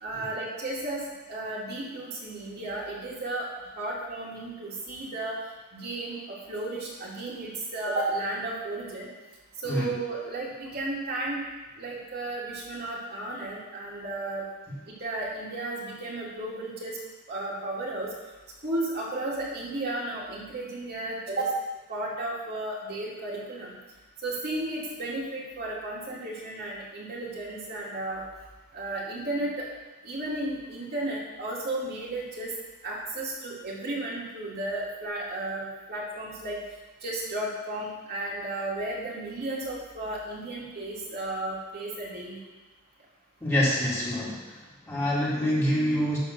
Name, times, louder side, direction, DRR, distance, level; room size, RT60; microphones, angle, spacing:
voice 1, 0.0-5.4 5.7-9.1 9.6-11.4 11.8-14.5 15.0-17.0 17.3-18.1 18.6-21.6 21.9-23.7 24.2-28.2 28.7-29.7 30.0-32.5 32.8-36.6 37.0-42.4, right 2 dB, 50° right, -5 dB, 2.3 m, -33 dB
voice 2, 43.4-44.6 44.9-46.2, equal, 10° left, -8 dB, 2.2 m, -26 dB
11.0 x 3.8 x 6.5 m, 1.2 s
head